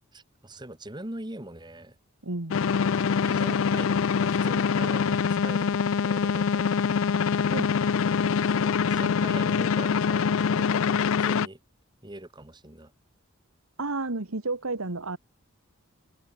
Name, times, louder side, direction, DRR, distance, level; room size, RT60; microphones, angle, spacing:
voice 1, 0.1-2.0 2.7-7.2 8.6-11.6 12.0-12.9, right 1 dB, 20° right, 1.9 m, -42 dB
voice 2, 2.2-2.6 7.5-7.7 13.8-15.2, right 3 dB, 85° right, 1.8 m, -31 dB
sound 1, 2.5-11.5, left 6 dB, 70° left, 0.4 m, -24 dB
head